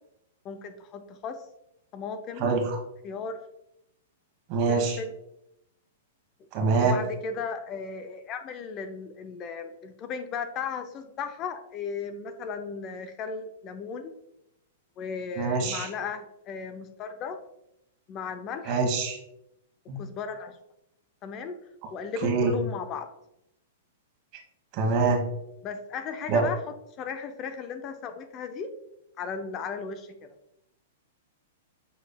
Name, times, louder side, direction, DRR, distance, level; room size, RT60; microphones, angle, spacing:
voice 1, 0.4-1.4 1.9-2.5 3.0-3.4 4.7-5.2 6.8-14.1 15.0-17.4 18.1-18.8 20.0-20.6 21.2-21.6 21.9-23.1 25.6-26.6 27.0-28.7 29.2-30.3, left 5 dB, 35° left, 8 dB, 0.4 m, -36 dB
voice 2, 4.5-5.0 6.5-7.0 15.4-15.9 18.7-19.2 19.9-20.0 22.2-22.5 24.7-25.2 26.3-26.4, right 4 dB, 45° right, 2 dB, 1.3 m, -24 dB
6.9 x 3.2 x 2.2 m, 0.82 s
hypercardioid pair, 135°, 0 cm